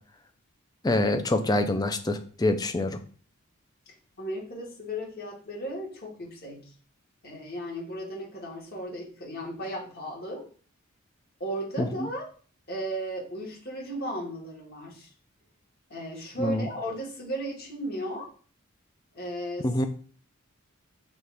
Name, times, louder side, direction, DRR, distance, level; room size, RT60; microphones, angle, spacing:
voice 1, 0.8-3.0 11.8-11.9 16.4-16.7 19.6-19.8, left 2 dB, 20° left, 6 dB, 0.4 m, -25 dB
voice 2, 4.2-6.7 7.2-10.5 11.4-12.3 12.7-15.1 15.9-18.3 19.1-19.8, right 1 dB, 45° left, -3 dB, 1.6 m, -35 dB
6.0 x 2.4 x 3.4 m, 0.43 s
head